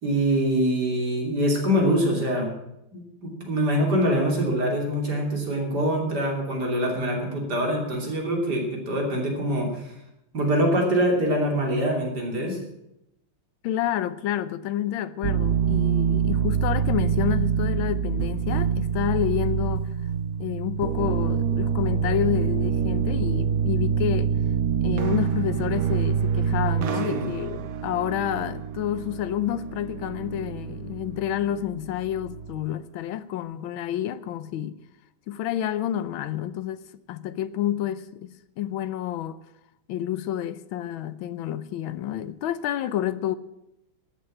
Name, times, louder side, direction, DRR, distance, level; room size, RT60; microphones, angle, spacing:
voice 1, 0.0-2.5 2.9-9.9 10.3-12.6 27.0-27.2, equal, 50° right, 3.5 m, -24 dB
voice 2, 13.6-19.9 20.4-24.3 24.8-34.8 35.3-39.4 39.9-43.4, left 11 dB, 70° left, 1.5 m, -29 dB
sound 1, 15.2-32.6, right 7 dB, 85° right, 0.7 m, -26 dB
13.5 x 8.5 x 8.6 m
omnidirectional pair, 2.4 m